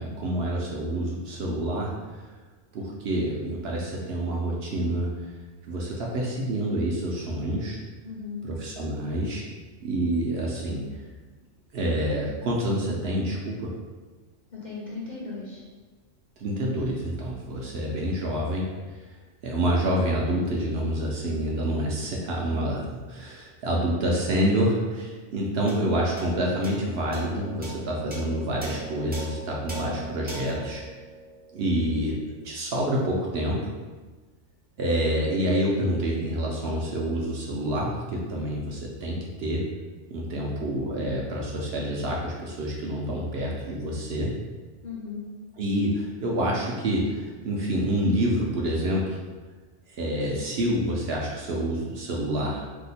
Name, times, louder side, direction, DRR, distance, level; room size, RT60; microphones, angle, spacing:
voice 1, 0.0-1.9 2.7-5.1 5.7-7.8 8.4-9.4 9.8-10.9 11.7-13.7 16.4-18.7 19.4-30.8 31.5-32.2 32.4-33.7 34.8-39.6 40.1-44.3 45.6-49.2 49.9-52.6, right 1 dB, 65° right, -2 dB, 0.7 m, -27 dB
voice 2, 8.0-8.5 14.5-15.6 44.8-45.3, left 4 dB, 45° left, -6 dB, 0.7 m, -36 dB
sound 1, 25.7-32.3, right 2 dB, 15° right, 0.4 m, -40 dB
2.8 x 2.1 x 4.0 m, 1.3 s
omnidirectional pair, 1.2 m